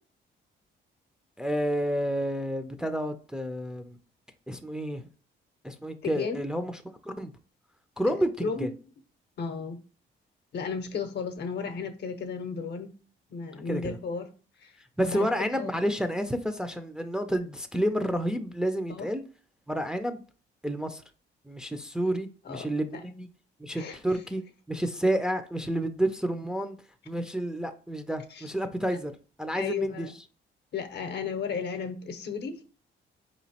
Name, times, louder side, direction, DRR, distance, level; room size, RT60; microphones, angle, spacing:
voice 1, 1.4-4.0 4.5-5.0 5.6-6.7 7.0-7.3 8.0-8.7 13.7-14.0 15.0-19.2 19.7-20.2 20.6-21.0 21.5-23.3 23.6-24.4 24.7-26.8 27.1-29.1 29.4-30.1, equal, 5° right, 0.4 m, -30 dB
voice 2, 6.0-6.4 8.0-8.7 9.4-9.8 10.5-12.9 13.3-14.3 14.6-14.7 15.0-15.7 18.9-19.1 22.4-22.7 22.9-23.0 23.7-24.0 28.3-28.5 29.5-30.1 30.7-32.6, left 5 dB, 60° left, 0.7 m, -34 dB
4.6 x 3.0 x 2.8 m
cardioid pair, 90°, 20 cm